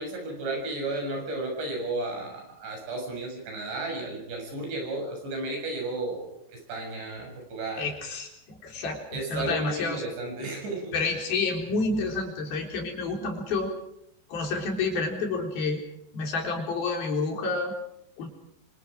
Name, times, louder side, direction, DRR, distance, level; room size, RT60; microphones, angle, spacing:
voice 1, 0.0-7.9 9.1-11.0, right 2 dB, 80° right, 2 dB, 9.1 m, -33 dB
voice 2, 7.8-9.0 9.3-10.0 10.9-13.7 14.3-15.8 16.1-17.7 18.2-18.3, left 3 dB, 60° left, 2 dB, 5.6 m, -29 dB
27.0 x 26.0 x 5.1 m, 0.73 s
omnidirectional pair, 4.9 m